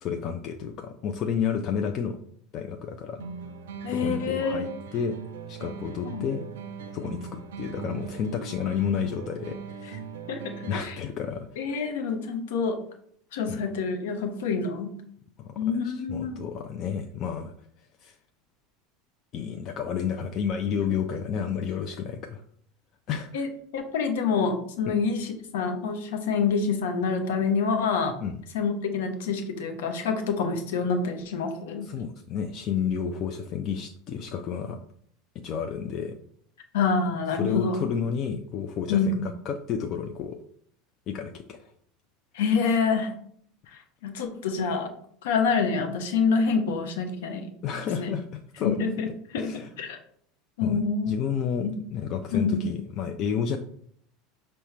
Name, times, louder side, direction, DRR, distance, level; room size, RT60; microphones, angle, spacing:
voice 1, 0.0-2.2 2.5-3.2 3.9-5.2 5.5-6.5 6.9-10.0 10.7-11.8 13.5-13.6 15.4-17.5 18.0-18.2 19.3-22.4 23.1-23.5 24.9-25.0 28.2-28.4 31.8-34.8 35.4-36.2 37.3-40.4 41.1-41.7 47.6-48.8 49.3-49.7 50.6-50.8 51.1-53.6, left 7 dB, 45° left, 6 dB, 0.4 m, -31 dB
sound 1, 3.2-11.2, right 6 dB, 70° right, 0.4 m, -40 dB
voice 2, 3.8-4.7 6.0-6.3 10.3-10.9 11.6-12.8 13.3-14.9 15.6-16.4 23.3-23.5 23.7-28.1 28.5-31.9 36.7-37.8 38.9-39.3 42.3-43.1 44.0-44.9 45.2-47.5 48.0-48.1 48.6-49.1 49.3-50.0 50.6-51.1 51.6-51.7 52.3-52.6, left 5 dB, 65° left, 5 dB, 0.7 m, -27 dB
5.6 x 2.1 x 4.2 m, 0.64 s
figure-of-eight pair, 75°, 0 cm